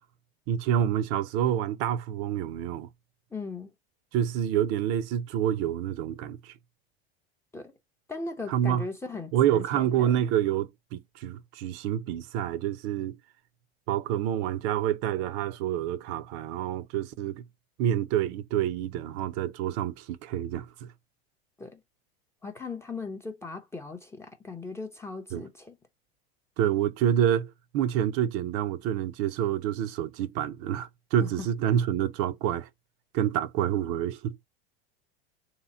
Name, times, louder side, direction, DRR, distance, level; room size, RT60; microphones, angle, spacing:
voice 1, 0.5-2.9 4.1-6.5 8.5-8.8 9.3-13.2 13.9-17.4 17.8-20.9 25.3-25.4 26.6-32.7 33.1-34.4, right 10 dB, 50° right, 0.6 m, -28 dB
voice 2, 3.3-3.7 7.5-7.7 8.1-10.2 21.6-21.8 22.4-25.8 31.2-31.3, left 3 dB, 10° left, 0.5 m, -38 dB
3.3 x 2.9 x 4.1 m
hypercardioid pair, 110°, 31 cm